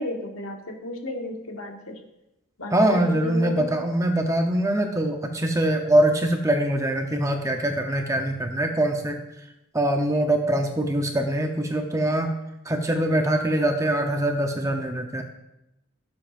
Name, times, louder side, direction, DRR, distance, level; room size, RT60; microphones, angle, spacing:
voice 1, 0.0-1.9 2.6-3.6, left 1 dB, 75° left, 2 dB, 1.7 m, -33 dB
voice 2, 2.7-9.2 9.7-12.3 12.7-15.2, right 1 dB, 15° right, 4 dB, 0.8 m, -23 dB
16.0 x 7.4 x 2.6 m, 0.91 s
head